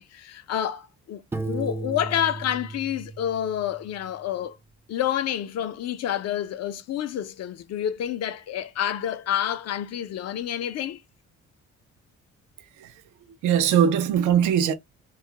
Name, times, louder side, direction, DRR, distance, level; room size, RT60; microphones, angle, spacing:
voice 1, 0.0-4.6 4.9-11.0, left 10 dB, 60° left, 0.5 m, -29 dB
Piano, 1.3-4.1, right 3 dB, 10° right, 0.3 m, -35 dB
voice 2, 13.4-14.7, right 9 dB, 75° right, 0.5 m, -21 dB
2.3 x 2.0 x 2.7 m
cardioid pair, 90°, 30 cm